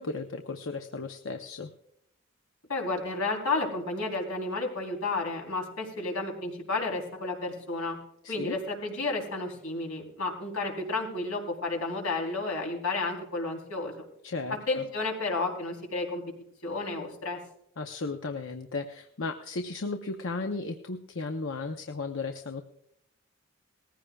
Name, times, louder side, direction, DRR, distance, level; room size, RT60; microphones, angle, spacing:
voice 1, 0.0-1.7 8.2-8.6 14.2-14.8 17.8-22.6, left 3 dB, 65° left, 6 dB, 0.7 m, -35 dB
voice 2, 2.7-8.0 8.3-14.1 14.7-16.2 16.6-17.4, left 3 dB, 80° left, 0 dB, 3.6 m, -32 dB
19.5 x 15.0 x 2.3 m, 0.73 s
head